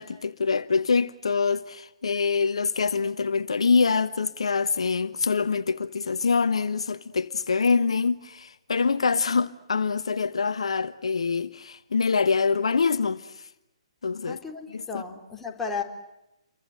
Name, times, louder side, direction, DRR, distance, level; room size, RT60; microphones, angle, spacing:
voice 1, 0.0-13.5 14.0-14.4 14.7-15.0, left 5 dB, 70° left, 1.2 m, -25 dB
voice 2, 14.2-15.8, left 5 dB, 10° left, 4.1 m, -34 dB
29.5 x 24.0 x 7.8 m
figure-of-eight pair, 130°, 3 cm